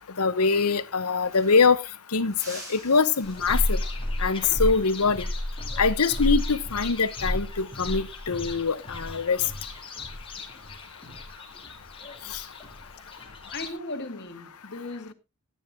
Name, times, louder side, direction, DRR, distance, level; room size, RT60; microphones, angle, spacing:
voice 1, 0.2-1.8 2.1-3.8 4.2-5.3 5.8-9.4 12.3-12.4, left 4 dB, 85° left, 0.9 m, -23 dB
sound 1, 1.0-1.9 2.3-4.1 6.6-6.8 8.3-8.7, right 1 dB, 15° right, 5.6 m, -47 dB
sound 2, 3.2-13.7, left 1 dB, 25° left, 2.6 m, -32 dB
voice 2, 13.5-15.1, left 2 dB, 50° left, 2.1 m, -36 dB
14.5 x 9.1 x 3.6 m
head